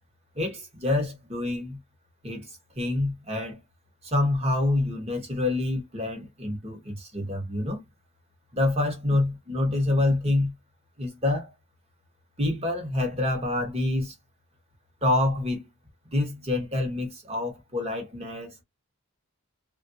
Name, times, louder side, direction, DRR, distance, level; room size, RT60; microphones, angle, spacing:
voice 1, 0.3-1.8 2.2-3.6 4.0-7.9 8.5-10.5 11.0-11.5 12.4-14.1 15.0-15.7 16.0-18.6, left 2 dB, 30° right, 1.1 m, -27 dB
3.2 x 2.5 x 2.7 m
head